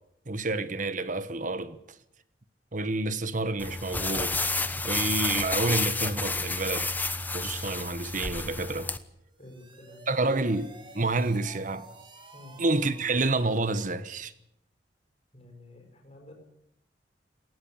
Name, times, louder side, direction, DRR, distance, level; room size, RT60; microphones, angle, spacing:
voice 1, 0.3-2.0 2.7-7.1 7.3-8.9 10.1-11.9 12.6-14.3, right 2 dB, 45° right, 1.3 m, -29 dB
sound 1, 3.6-9.0, left 3 dB, 10° left, 1.0 m, -30 dB
sound 2, 9.2-14.0, right 3 dB, 30° right, 3.0 m, -51 dB
voice 2, 9.4-10.0 12.3-12.6 15.3-16.3, left 1 dB, 35° left, 5.6 m, -50 dB
19.0 x 16.5 x 8.8 m
head